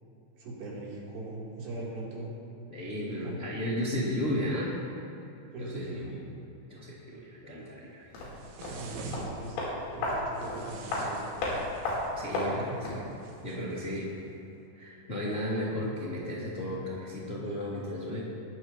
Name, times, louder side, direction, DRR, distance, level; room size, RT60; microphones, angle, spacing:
voice 1, 0.4-2.3 3.2-3.4 5.5-6.2 8.6-9.6 9.9-11.4 12.4-12.8, right 2 dB, 60° right, -6 dB, 5.4 m, -40 dB
voice 2, 2.7-4.7 5.6-6.1 6.7-8.1 12.1-13.0 13.4-14.1 14.7-18.2, left 1 dB, 30° left, -8 dB, 1.4 m, -34 dB
sound 1, 8.1-13.1 13.4-13.5, left 1 dB, 80° left, 6.3 m, -34 dB
sound 2, 8.4-9.7 10.3-12.2 13.2-13.9, right 3 dB, 80° right, 4.1 m, -45 dB
21.5 x 14.5 x 3.0 m, 3.0 s
omnidirectional pair, 5.7 m